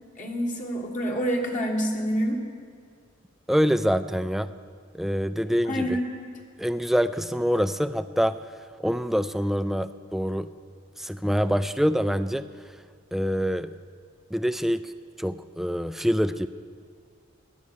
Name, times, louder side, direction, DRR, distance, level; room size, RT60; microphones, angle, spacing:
voice 1, 0.2-2.4 5.6-6.1, equal, 40° left, 1 dB, 1.6 m, -27 dB
voice 2, 3.5-4.5 4.9-6.0 6.6-8.4 8.8-10.5 11.0-12.4 13.1-13.7 14.3-14.9 15.2-16.5, equal, ahead, 13 dB, 0.3 m, -25 dB
15.5 x 11.0 x 6.3 m, 2.1 s
head